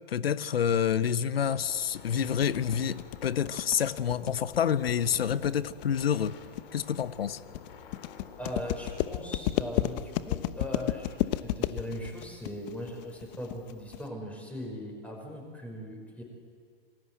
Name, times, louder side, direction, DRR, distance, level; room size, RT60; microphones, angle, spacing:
voice 1, 0.1-6.3 6.7-7.4, left 8 dB, 85° left, 16 dB, 1.0 m, -28 dB
sound 1, 1.4-9.4, left 6 dB, 65° left, 3.5 m, -50 dB
sound 2, 2.1-14.1, left 14 dB, 45° left, 1.1 m, -33 dB
voice 2, 8.4-11.1 11.4-16.2, equal, 5° left, 1 dB, 5.6 m, -39 dB
28.0 x 20.5 x 8.0 m, 2.1 s
hypercardioid pair, 125°, 29 cm